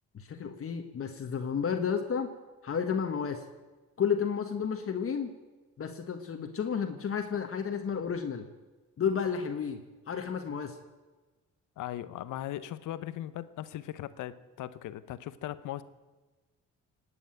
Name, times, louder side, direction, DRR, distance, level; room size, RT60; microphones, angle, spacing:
voice 1, 0.1-2.3 2.6-3.4 4.0-5.3 5.8-8.5 9.0-9.8 10.1-10.8, left 7 dB, 45° left, 5 dB, 1.4 m, -31 dB
voice 2, 11.8-15.8, left 13 dB, 85° left, 14 dB, 0.9 m, -38 dB
19.0 x 8.1 x 9.1 m, 1.2 s
cardioid pair, 90°, 30 cm